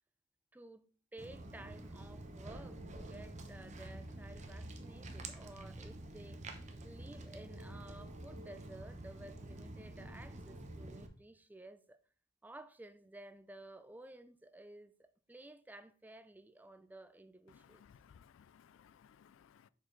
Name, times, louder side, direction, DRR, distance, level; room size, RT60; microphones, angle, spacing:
voice 1, 0.5-0.9 1.1-6.4 6.8-12.0 12.4-14.9 15.3-17.8, right 2 dB, 10° right, 0.3 m, -54 dB
Walk footsteps, 1.2-11.1, right 1 dB, 35° right, 0.8 m, -48 dB
voice 2, 17.5-19.7, left 7 dB, 75° left, 0.3 m, -62 dB
6.4 x 5.1 x 3.8 m
head